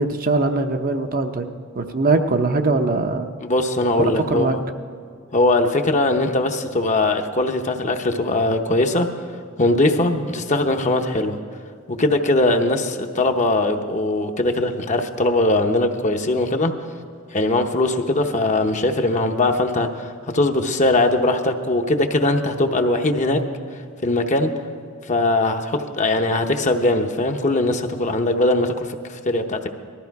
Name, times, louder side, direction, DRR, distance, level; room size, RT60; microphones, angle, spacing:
voice 1, 0.0-1.5 1.7-3.3 4.0-4.6, right 3 dB, 45° right, 6 dB, 0.7 m, -21 dB
voice 2, 3.4-4.6 5.3-9.1 9.6-11.4 11.9-16.7 17.3-23.4 24.0-24.5 25.1-29.7, left 2 dB, 35° left, 5 dB, 0.8 m, -20 dB
19.0 x 13.5 x 4.7 m, 2.1 s
head